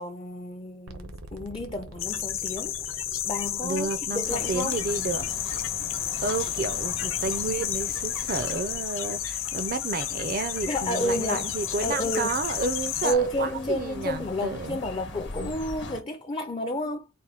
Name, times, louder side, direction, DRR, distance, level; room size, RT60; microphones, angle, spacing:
voice 1, 0.0-4.8 10.7-11.5 11.8-12.4 13.0-17.1, equal, 25° left, 0.4 m, -31 dB
sound 1, 0.9-8.9, right 1 dB, 85° right, 0.8 m, -46 dB
sound 2, 2.0-13.1, left 11 dB, 75° left, 0.7 m, -31 dB
voice 2, 3.6-5.2 6.2-14.8 15.4-15.5, right 4 dB, 45° right, 0.4 m, -31 dB
sound 3, 4.2-16.0, left 2 dB, 55° left, 1.0 m, -41 dB
4.3 x 2.2 x 4.1 m
head